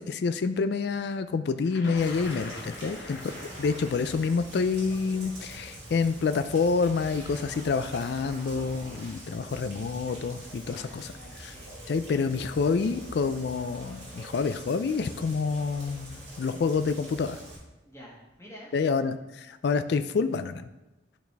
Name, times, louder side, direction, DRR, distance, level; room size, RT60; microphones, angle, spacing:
voice 1, 0.0-3.2 3.6-11.1 11.4-11.5 11.9-17.4 18.7-20.6, left 4 dB, 60° left, 10 dB, 0.4 m, -28 dB
Thunder, 1.6-7.6 8.6-8.7 9.8-10.1 10.4-10.8, left 3 dB, 90° left, 1.1 m, -45 dB
sound 1, 1.9-4.1 4.5-9.2, right 1 dB, 85° right, 2.2 m, -49 dB
Rain, 2.0-17.6, right 1 dB, 65° right, 2.5 m, -45 dB
voice 2, 2.7-3.1 10.6-11.7 17.8-18.7, equal, 15° left, -4 dB, 1.7 m, -49 dB
11.0 x 4.1 x 3.4 m, 1.0 s
head